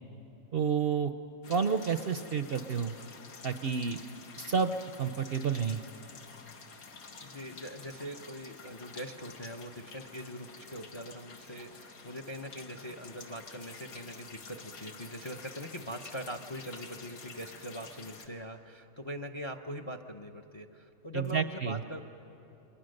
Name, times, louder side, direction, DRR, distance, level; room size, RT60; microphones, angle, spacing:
voice 1, 0.5-1.1 1.5-2.9 3.4-4.0 4.4-4.7 5.0-5.8 21.1-21.8, right 6 dB, 55° right, 9 dB, 0.7 m, -30 dB
sound 1, 1.4-18.3, left 4 dB, 85° left, 1.9 m, -49 dB
voice 2, 7.2-22.0, equal, 30° left, 6 dB, 0.6 m, -42 dB
28.5 x 23.0 x 6.5 m, 2.9 s
omnidirectional pair, 1.5 m